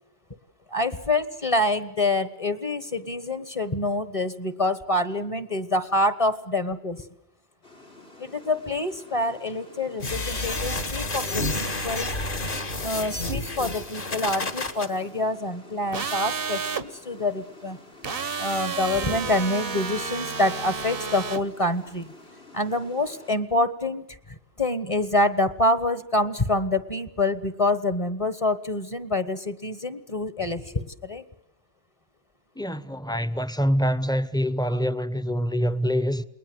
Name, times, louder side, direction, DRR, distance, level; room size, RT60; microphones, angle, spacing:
voice 1, 0.7-7.0 8.2-12.1 12.8-17.8 18.4-22.1 22.5-24.0 24.3-31.2, left 2 dB, 35° left, 1.4 m, -26 dB
Water, 7.6-23.4, left 2 dB, 85° left, 6.0 m, -50 dB
sound 1, 10.0-14.9, left 2 dB, 55° left, 2.2 m, -29 dB
sound 2, 15.9-16.8 18.0-21.4, right 5 dB, 65° right, 1.4 m, -31 dB
voice 2, 32.6-36.2, equal, 5° left, 0.9 m, -25 dB
29.0 x 21.0 x 8.0 m
omnidirectional pair, 1.0 m